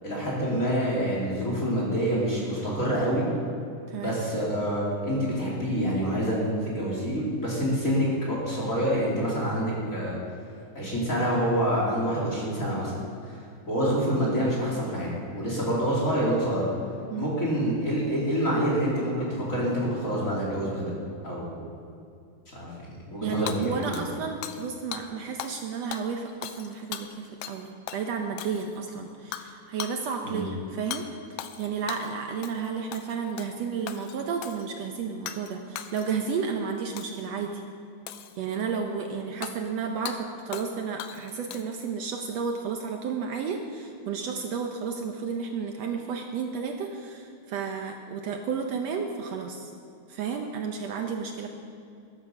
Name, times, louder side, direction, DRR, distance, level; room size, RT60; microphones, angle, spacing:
voice 1, 0.0-3.3 3.9-10.2 10.7-12.9 13.7-16.7 17.2-20.9 21.2-21.6 22.5-22.7 23.1-23.9 30.2-30.5, equal, 25° left, -5 dB, 3.2 m, -27 dB
voice 2, 23.2-31.0 31.3-37.6 38.4-49.7 50.1-51.5, right 6 dB, 70° right, 3 dB, 1.8 m, -32 dB
Hammer / Shatter, 23.5-24.7 24.9-25.1 25.4-25.6 25.9-27.6 27.9-28.0 28.4-28.8 29.3-29.5 29.8-30.0 30.9-31.0 31.4-32.1 32.4-32.7 32.9-33.5 33.9-34.7 35.3-35.5 35.8-36.4 37.0-37.3 38.1-38.6 39.4-39.5 40.1-40.2 40.5-40.7 41.0-41.8, left 11 dB, 75° left, 1.8 m, -38 dB
13.5 x 12.0 x 5.5 m, 2.5 s
omnidirectional pair, 3.4 m